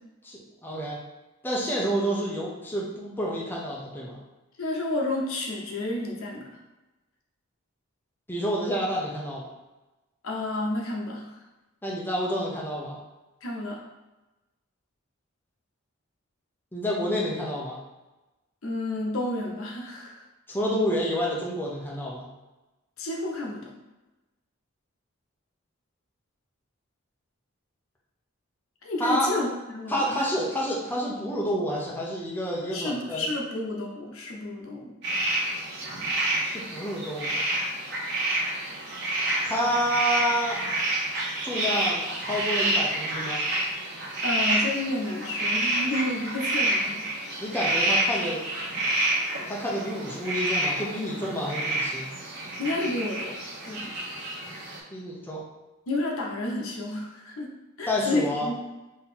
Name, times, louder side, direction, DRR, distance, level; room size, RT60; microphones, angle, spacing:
voice 1, 0.2-1.0 1.4-4.2 8.3-9.5 11.8-13.0 16.7-17.8 20.5-22.3 29.0-29.3 29.9-33.3 36.4-37.4 39.5-40.6 41.4-43.4 47.4-48.4 49.5-52.1 54.9-55.4 57.9-58.5, equal, 10° left, -4 dB, 0.7 m, -29 dB
voice 2, 4.6-6.5 10.2-11.3 13.4-13.8 18.6-20.2 23.0-23.7 28.8-30.3 32.7-34.9 44.2-47.0 52.6-53.3 53.6-53.9 55.9-57.5 57.8-58.6, left 2 dB, 70° left, -1 dB, 0.9 m, -30 dB
sound 1, 35.0-54.8, right 1 dB, 55° right, 1.4 m, -28 dB
4.0 x 2.8 x 4.2 m, 1.1 s
head